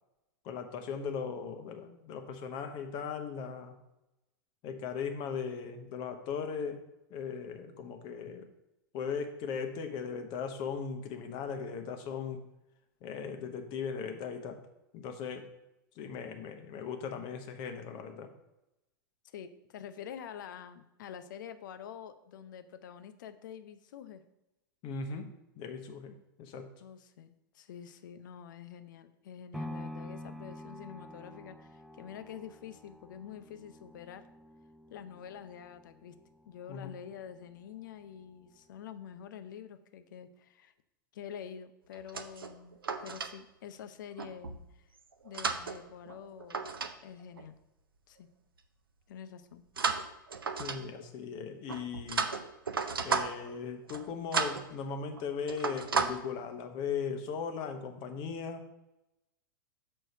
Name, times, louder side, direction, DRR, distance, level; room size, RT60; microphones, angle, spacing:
voice 1, 0.4-3.8 4.6-6.8 7.1-8.5 8.9-12.4 13.0-14.6 14.9-15.5 16.0-18.3 24.8-25.3 25.6-26.7 36.7-36.9 50.6-52.3 53.0-58.6, left 6 dB, 40° left, 6 dB, 1.0 m, -38 dB
voice 2, 19.2-24.2 26.8-34.3 34.9-36.2 36.4-40.7 41.1-44.9 45.2-46.7 47.0-47.6 48.1-48.3 49.1-49.6, left 8 dB, 60° left, 11 dB, 0.6 m, -47 dB
sound 1, 29.5-37.6 38.1-38.2, left 1 dB, ahead, 0.6 m, -48 dB
sound 2, 41.9-43.3 44.2-44.6 45.1-46.9 47.2-47.5 49.8-51.1 51.7-53.5 53.8-54.1 54.3-54.7 55.0-55.2 55.5-56.1, right 5 dB, 85° right, 0.6 m, -34 dB
6.5 x 4.4 x 5.4 m, 0.92 s
figure-of-eight pair, 95°, 12 cm